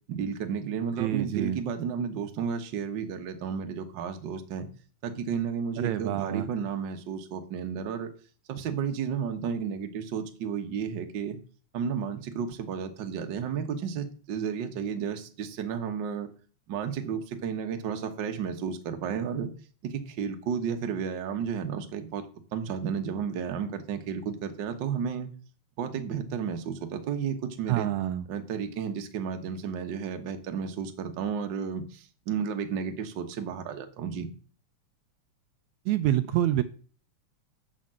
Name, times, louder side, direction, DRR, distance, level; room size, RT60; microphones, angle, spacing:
voice 1, 0.1-4.7 5.0-8.1 8.5-11.4 11.7-16.3 16.7-19.5 19.8-22.2 22.5-25.3 25.8-27.9 28.3-34.3, right 7 dB, 55° right, 6 dB, 1.4 m, -32 dB
voice 2, 1.0-1.6 5.8-6.5 27.7-28.2 35.9-36.6, right 13 dB, 80° right, 10 dB, 1.8 m, -27 dB
7.2 x 6.7 x 7.5 m, 0.41 s
omnidirectional pair, 3.4 m